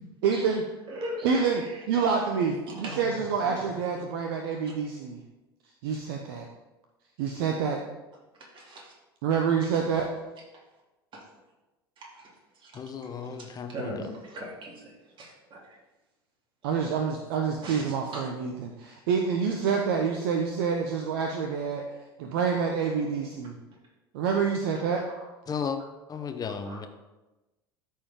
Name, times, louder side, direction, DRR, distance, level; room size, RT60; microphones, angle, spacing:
voice 1, 0.2-0.6 1.2-1.6 1.9-5.2 5.8-6.4 7.2-7.8 9.2-10.1 16.6-21.8 22.2-23.6 24.1-25.0, right 6 dB, 65° right, 2 dB, 0.9 m, -27 dB
voice 2, 0.9-1.8 2.7-3.7 8.5-8.9 11.1-11.2 12.0-12.7 13.2-15.8 17.6-18.3 26.6-26.8, right 1 dB, 40° right, -3 dB, 3.0 m, -40 dB
voice 3, 12.7-13.9 25.5-25.8 26.1-26.9, left 6 dB, 30° left, 7 dB, 1.0 m, -34 dB
13.5 x 4.6 x 3.7 m, 1.1 s
figure-of-eight pair, 75°, 13 cm